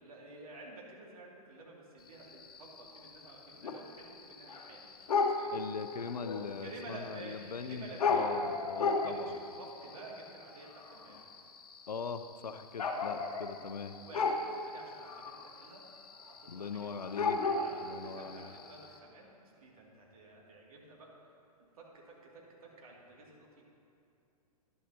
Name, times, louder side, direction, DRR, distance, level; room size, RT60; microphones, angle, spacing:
voice 1, 0.0-5.6 6.5-8.4 8.8-11.3 14.0-15.8 16.2-16.9 17.4-21.3 21.6-23.6, right 2 dB, 65° right, -3 dB, 2.4 m, -51 dB
sound 1, 2.1-19.0, left 4 dB, 70° left, 1.0 m, -36 dB
voice 2, 5.5-9.4 11.9-14.0 16.5-17.4 17.8-18.5, left 5 dB, 85° left, 10 dB, 0.5 m, -41 dB
11.5 x 11.5 x 2.8 m, 2.6 s
hypercardioid pair, 115°, 20 cm